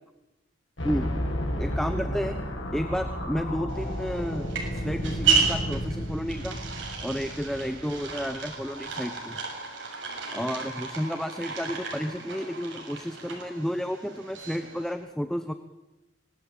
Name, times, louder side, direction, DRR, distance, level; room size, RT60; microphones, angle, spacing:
sound 1, 0.8-8.8, equal, 75° left, 6.9 m, -32 dB
voice 1, 0.8-1.1 1.6-2.4 2.7-6.6 7.0-9.4 10.3-15.5, equal, ahead, 9 dB, 1.0 m, -31 dB
sound 2, 3.7-14.9, right 5 dB, 70° right, 7.0 m, -33 dB
25.5 x 19.0 x 9.0 m, 1.0 s
head